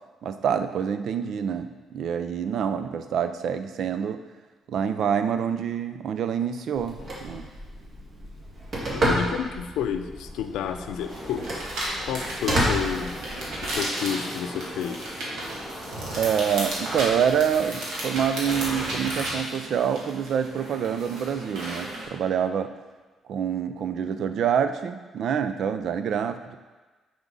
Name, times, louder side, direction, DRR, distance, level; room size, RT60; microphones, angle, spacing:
voice 1, 0.2-4.2 4.7-7.5 16.2-22.7 23.3-26.6, right 8 dB, 70° right, 9 dB, 0.5 m, -26 dB
Telephone, 6.8-13.7, equal, 50° right, 2.2 m, -30 dB
voice 2, 8.9-11.6 12.0-13.2 13.6-15.0, left 8 dB, 90° left, 8 dB, 0.5 m, -30 dB
Car passing by / Race car auto racing, 9.7-19.8, equal, 5° right, 1.3 m, -44 dB
sound 1, 11.1-22.0, right 1 dB, 90° right, 1.9 m, -34 dB
6.0 x 5.1 x 5.4 m, 1.3 s
cardioid pair, 90°, 0 cm